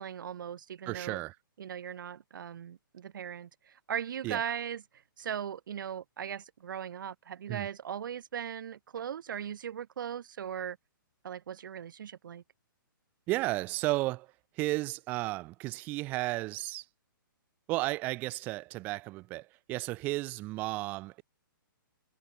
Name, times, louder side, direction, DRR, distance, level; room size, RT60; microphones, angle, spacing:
voice 1, 0.0-1.2 1.6-10.8 11.2-12.4, right 8 dB, 65° right, 0.5 m, -39 dB
voice 2, 0.9-1.3 4.2-4.4 7.5-7.7 13.3-16.9 17.7-21.2, right 20 dB, 15° right, 0.6 m, -33 dB
hypercardioid pair, 170°, 12 cm